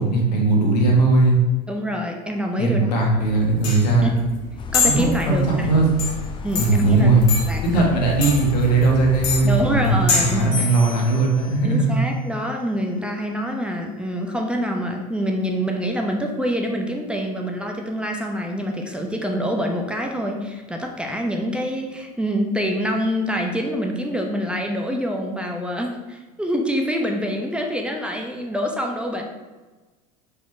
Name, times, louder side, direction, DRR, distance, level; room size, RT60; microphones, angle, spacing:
voice 1, 0.0-1.4 2.6-4.2 4.8-5.9 6.6-7.2 7.7-12.0, right 3 dB, 80° left, -1 dB, 1.8 m, -18 dB
voice 2, 1.7-2.9 4.0-4.1 4.7-5.7 6.4-7.1 7.5-7.6 9.4-10.6 11.6-29.2, equal, 5° right, 2 dB, 0.9 m, -26 dB
sound 1, 3.1-10.4, left 4 dB, 60° left, 2.0 m, -26 dB
sound 2, 4.6-10.4, left 7 dB, 25° left, 0.7 m, -33 dB
sound 3, 10.5-13.7, left 7 dB, 20° right, 2.0 m, -37 dB
5.2 x 4.4 x 4.6 m, 1.2 s
hypercardioid pair, 90°, 21 cm